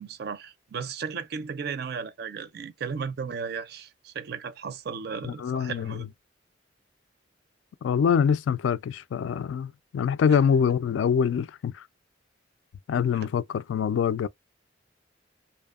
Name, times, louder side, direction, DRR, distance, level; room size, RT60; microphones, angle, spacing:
voice 1, 0.0-6.1 10.3-10.4, right 6 dB, 55° right, 0.4 m, -35 dB
voice 2, 5.2-6.1 7.8-11.8 12.9-14.3, left 7 dB, 80° left, 0.3 m, -25 dB
2.8 x 2.1 x 2.3 m
head